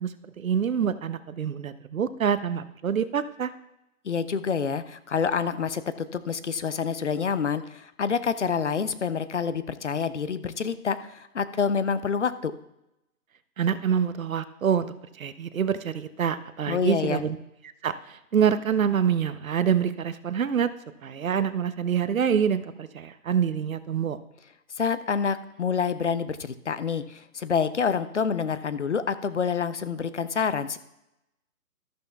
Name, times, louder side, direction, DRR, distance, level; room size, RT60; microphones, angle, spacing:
voice 1, 0.0-3.5 13.6-17.4 17.8-20.7 21.0-24.2, right 8 dB, 65° right, 13 dB, 0.7 m, -26 dB
voice 2, 4.0-12.5 16.7-17.2 24.8-30.8, left 6 dB, 50° left, 13 dB, 0.5 m, -27 dB
13.0 x 11.5 x 2.3 m, 0.88 s
hypercardioid pair, 170°, 44 cm